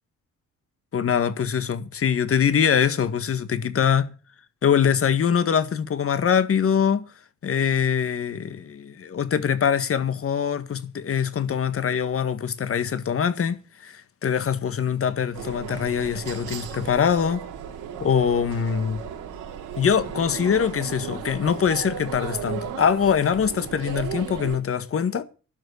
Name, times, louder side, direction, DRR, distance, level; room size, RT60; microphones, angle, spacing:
voice 1, 0.9-4.1 4.6-7.1 7.4-17.4 18.0-19.0 19.8-25.2, left 7 dB, 45° left, 1.8 m, -23 dB
sound 1, 15.3-24.6, right 8 dB, 90° right, 3.5 m, -35 dB
12.0 x 6.8 x 9.9 m
cardioid pair, 90°, 30 cm